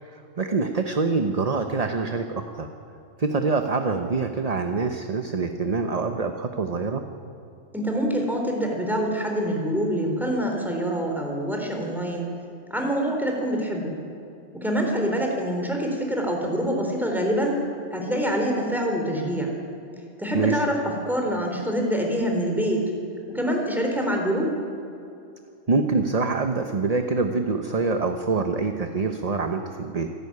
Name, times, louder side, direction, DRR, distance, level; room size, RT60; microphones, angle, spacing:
voice 1, 0.0-2.7 3.2-7.0 20.3-20.6 25.7-30.1, right 4 dB, 35° right, 6 dB, 1.0 m, -25 dB
voice 2, 7.7-12.3 12.7-14.0 14.5-17.6 17.9-19.6 20.2-20.8 21.0-22.9 23.3-24.5, equal, ahead, 1 dB, 3.7 m, -25 dB
27.0 x 12.5 x 9.6 m, 2.7 s
omnidirectional pair, 1.3 m